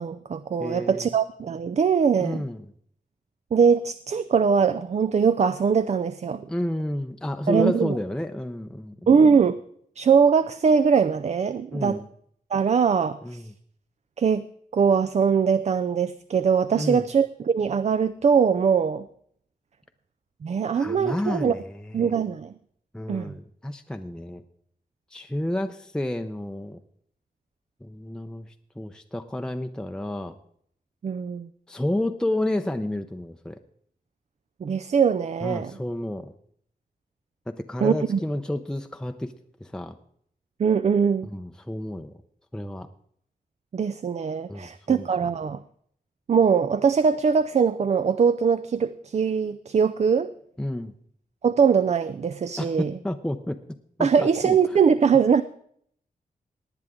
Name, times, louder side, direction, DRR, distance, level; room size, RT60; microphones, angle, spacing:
voice 1, 0.0-2.4 3.5-6.5 7.5-7.9 9.1-9.6 10.0-12.0 12.5-13.4 14.2-14.4 14.7-19.1 20.4-21.6 21.9-22.5 23.1-23.3 31.0-31.5 34.6-35.7 37.8-38.2 40.6-41.3 43.7-45.6 46.3-50.3 51.4-52.9 54.0-55.4, right 6 dB, 45° right, 13 dB, 0.4 m, -21 dB
voice 2, 0.6-1.1 2.2-2.7 6.5-9.1 11.7-12.1 13.2-13.5 16.7-17.1 20.7-22.1 22.9-24.4 25.1-26.8 27.8-28.5 28.8-30.3 31.7-33.6 35.4-36.3 37.5-39.3 39.6-40.0 41.2-42.1 42.5-42.9 44.5-45.3 50.6-50.9 52.6-53.6 54.0-54.8, left 1 dB, 5° left, 6 dB, 0.6 m, -30 dB
18.5 x 9.6 x 3.7 m, 0.65 s
wide cardioid pair, 120°, 15 cm